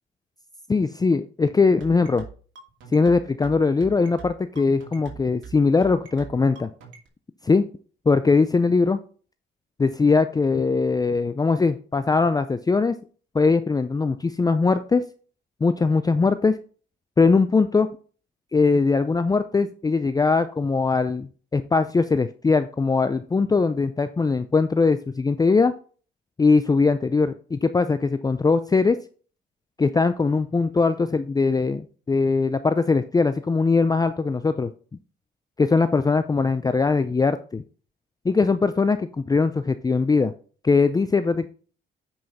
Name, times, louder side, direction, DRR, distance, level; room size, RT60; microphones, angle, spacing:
voice 1, 0.7-2.2 2.9-6.7 7.4-7.7 8.1-9.0 9.8-12.9 13.3-15.0 15.6-16.6 17.2-17.9 18.5-25.7 26.4-29.0 29.8-34.7 35.6-37.6 38.2-40.3 40.6-41.5, left 4 dB, 20° left, 11 dB, 0.5 m, -21 dB
sound 1, 1.8-7.1, right 6 dB, 75° right, 2.4 m, -42 dB
9.2 x 5.5 x 4.1 m, 0.40 s
cardioid pair, 90°, 20 cm